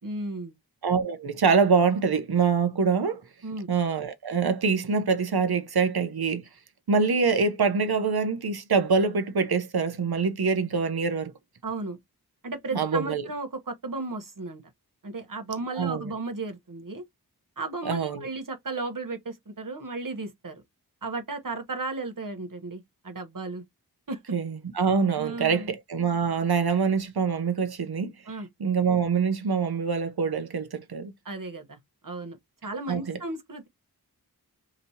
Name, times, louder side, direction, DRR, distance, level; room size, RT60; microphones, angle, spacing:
voice 1, 0.0-0.6 3.4-3.7 11.6-12.0 12.4-14.6 15.0-17.0 17.6-20.6 21.0-23.6 24.1-24.2 25.1-25.7 28.3-28.5 31.2-31.8 32.0-32.4 32.6-33.7, right 3 dB, 55° right, 1.1 m, -34 dB
voice 2, 0.8-3.2 3.7-6.4 6.9-11.3 12.7-13.3 15.8-16.1 17.8-18.3 24.3-28.1 28.6-31.1 32.9-33.2, right 5 dB, 80° right, 0.8 m, -25 dB
5.0 x 2.9 x 2.8 m
wide cardioid pair, 40°, 38 cm